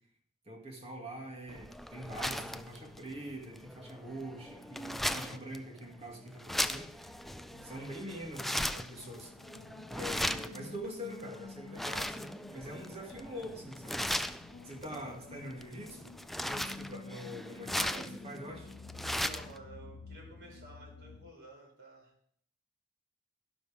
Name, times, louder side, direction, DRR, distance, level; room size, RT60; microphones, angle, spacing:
voice 1, 0.5-7.1 7.6-9.3 10.0-14.0 14.6-16.1 16.4-18.7, equal, 30° right, 1 dB, 2.4 m, -44 dB
sound 1, 1.5-19.6, equal, ahead, 0.4 m, -38 dB
sound 2, 2.4-21.3, left 4 dB, 75° left, 0.6 m, -52 dB
voice 2, 19.0-22.1, right 2 dB, 60° right, 0 dB, 4.7 m, -52 dB
12.5 x 11.5 x 3.6 m, 0.67 s
head